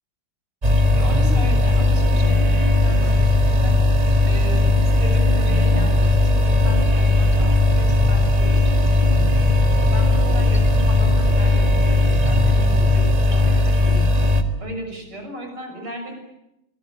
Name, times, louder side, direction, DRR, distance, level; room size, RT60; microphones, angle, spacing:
sound 1, 0.6-14.4, left 2 dB, 20° right, 1.9 m, -17 dB
voice 1, 0.9-3.9 4.3-14.3 14.6-16.2, right 1 dB, 90° right, 4 dB, 7.6 m, -36 dB
26.0 x 21.5 x 9.1 m, 0.87 s
omnidirectional pair, 2.4 m